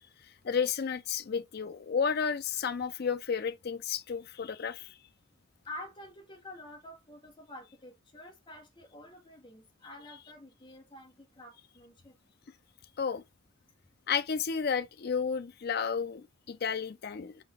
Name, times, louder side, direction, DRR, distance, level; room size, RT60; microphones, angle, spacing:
voice 1, 0.4-5.0 13.0-13.2 14.1-17.4, left 6 dB, 45° left, 0.4 m, -32 dB
voice 2, 5.6-12.2, left 1 dB, 20° left, 1.0 m, -48 dB
3.8 x 3.4 x 3.4 m
head